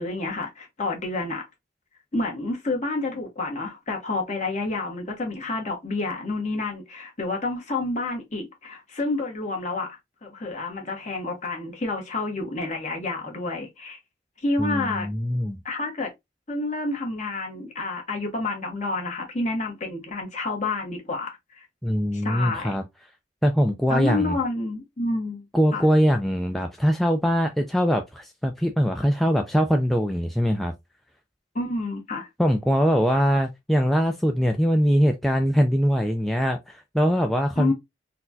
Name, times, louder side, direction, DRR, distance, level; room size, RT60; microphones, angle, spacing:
voice 1, 0.0-1.4 2.1-14.0 14.4-15.1 15.6-16.1 16.5-21.7 22.1-22.8 23.9-25.4 25.7-25.8 31.5-32.3 37.6-37.7, left 2 dB, 40° left, 1.1 m, -29 dB
voice 2, 14.6-15.6 21.8-22.8 23.4-24.4 25.5-30.7 32.4-37.7, equal, ahead, 0.3 m, -22 dB
4.1 x 2.2 x 2.6 m
head